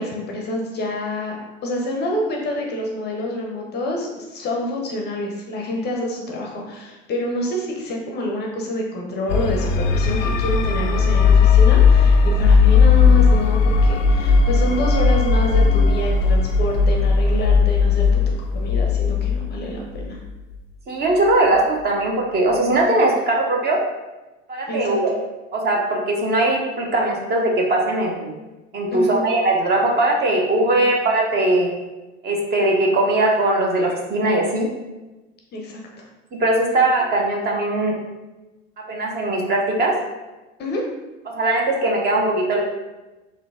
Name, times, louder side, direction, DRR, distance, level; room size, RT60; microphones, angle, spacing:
voice 1, 0.0-18.2 18.5-20.2 24.7-25.0 28.9-29.3 30.7-30.9 35.5-36.0 40.6-40.8, left 1 dB, 25° left, 0 dB, 0.6 m, -27 dB
sound 1, 9.3-20.3, left 5 dB, 70° left, 0.5 m, -16 dB
voice 2, 20.9-23.8 24.5-25.1 25.5-28.3 28.7-31.7 32.2-34.7 36.3-38.0 38.9-40.0 41.3-42.6, right 2 dB, 25° right, -1 dB, 0.7 m, -20 dB
3.8 x 2.7 x 3.5 m, 1.1 s
figure-of-eight pair, 75°, 39 cm